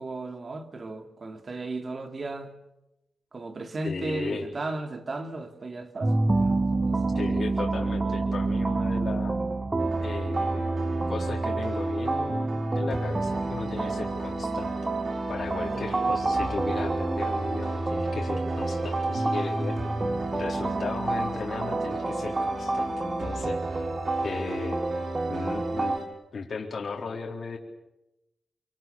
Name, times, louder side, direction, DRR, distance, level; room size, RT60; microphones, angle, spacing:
voice 1, 0.0-2.5 3.3-6.6 6.9-7.0 8.8-9.0 15.7-15.9, right 2 dB, 45° right, 7 dB, 2.8 m, -35 dB
voice 2, 3.8-4.4 7.1-9.3 10.0-14.7 15.3-19.8 20.3-23.8 24.2-24.8 25.3-26.0 26.3-27.6, left 4 dB, 60° left, 0 dB, 4.1 m, -36 dB
sound 1, 6.0-26.0, right 2 dB, 30° right, 1.8 m, -28 dB
sound 2, 9.8-26.1, right 2 dB, 70° right, 5.1 m, -36 dB
27.5 x 26.0 x 7.0 m, 0.93 s
cardioid pair, 90°, 0 cm